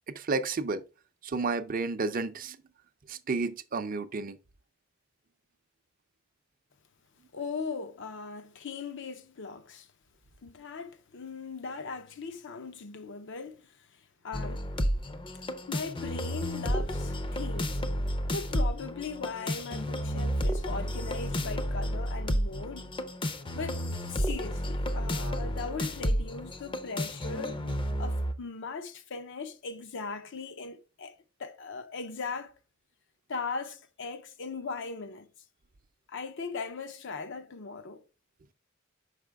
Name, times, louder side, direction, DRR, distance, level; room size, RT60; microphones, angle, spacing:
voice 1, 0.1-0.8 1.2-2.6 3.1-4.4, right 3 dB, 45° right, 0.5 m, -31 dB
voice 2, 7.3-9.9 10.4-13.8 14.2-14.7 15.7-17.8 18.3-22.9 23.5-27.6 28.0-32.5 33.3-35.3 36.1-38.0, left 4 dB, 60° left, 0.7 m, -39 dB
sound 1, 14.3-28.3, equal, 25° left, 0.6 m, -31 dB
5.8 x 4.9 x 3.4 m
head